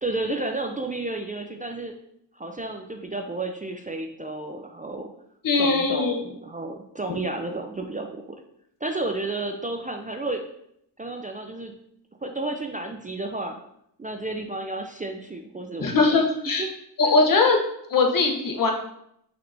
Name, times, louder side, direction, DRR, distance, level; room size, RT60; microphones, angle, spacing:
voice 1, 0.0-2.0 2.3-5.1 5.6-8.2 8.8-10.4 11.0-11.7 12.2-13.6 14.0-16.2 16.6-16.7 17.0-17.1, right 2 dB, 20° right, 3 dB, 0.4 m, -32 dB
voice 2, 5.4-6.2 15.8-16.7 17.0-17.6 17.9-18.7, left 3 dB, 55° left, 2 dB, 0.9 m, -20 dB
5.7 x 3.4 x 2.6 m, 0.74 s
cardioid pair, 75°, 41 cm